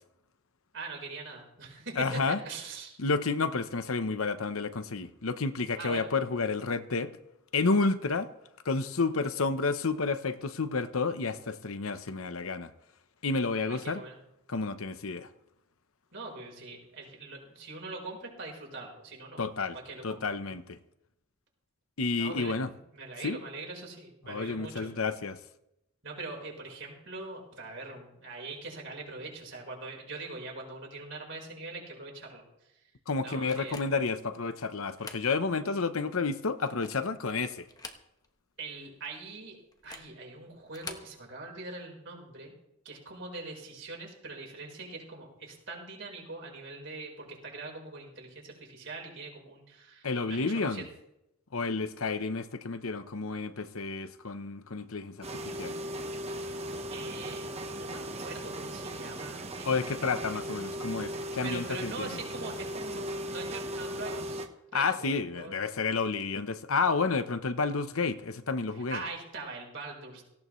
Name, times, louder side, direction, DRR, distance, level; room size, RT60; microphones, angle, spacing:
voice 1, 0.7-2.9 5.7-6.1 13.7-14.2 16.1-19.4 19.8-20.2 22.2-22.6 22.9-24.9 26.0-32.9 33.2-33.8 38.6-39.6 39.8-42.5 42.8-50.8 56.9-60.2 61.4-64.4 64.7-65.5 68.7-70.2, right 3 dB, 55° right, 4.6 m, -42 dB
voice 2, 2.0-2.4 3.0-7.1 7.5-8.3 8.6-12.7 13.2-14.0 14.5-15.3 19.4-19.8 20.0-20.8 22.0-22.7 23.2-23.4 24.2-25.4 33.1-37.7 50.0-50.8 51.5-55.8 59.6-62.2 64.7-69.0, left 4 dB, 80° left, 0.9 m, -30 dB
sound 1, 33.5-34.2 34.8-35.3 35.7-35.8 36.5-37.1 37.6-38.4 38.7-38.8 39.7-40.2 40.7-41.1, left 4 dB, 15° left, 1.1 m, -46 dB
sound 2, 55.2-64.5, right 1 dB, 30° right, 1.0 m, -37 dB
18.0 x 16.5 x 3.2 m
head